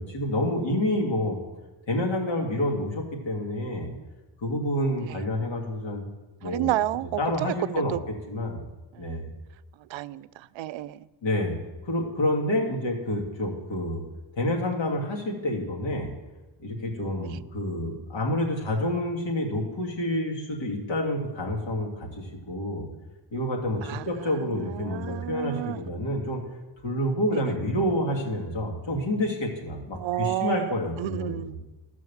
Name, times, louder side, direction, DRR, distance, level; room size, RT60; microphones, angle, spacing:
voice 1, 0.0-1.4 1.9-3.9 4.4-6.0 6.4-6.7 7.2-8.0 8.3-8.6 9.0-9.3 11.2-11.6 11.8-14.0 14.3-16.1 16.6-22.9 23.3-26.4 26.8-31.6, left 1 dB, 85° left, 0 dB, 2.8 m, -28 dB
voice 2, 6.4-8.0 8.9-9.2 9.8-11.1 17.2-17.4 23.8-25.9 27.3-27.4 29.9-31.6, right 14 dB, 85° right, 17 dB, 0.5 m, -31 dB
14.0 x 6.4 x 7.2 m, 1.1 s
cardioid pair, 100°, 45 cm